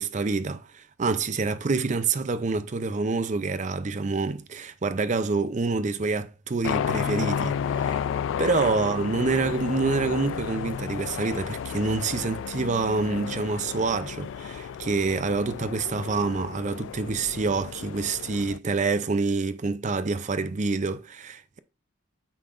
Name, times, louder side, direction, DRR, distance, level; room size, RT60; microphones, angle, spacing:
voice 1, 0.0-8.1 8.4-21.6, right 4 dB, 40° right, 0.5 m, -27 dB
sound 1, 6.6-18.6, left 7 dB, 75° left, 0.3 m, -32 dB
8.5 x 5.7 x 2.5 m
head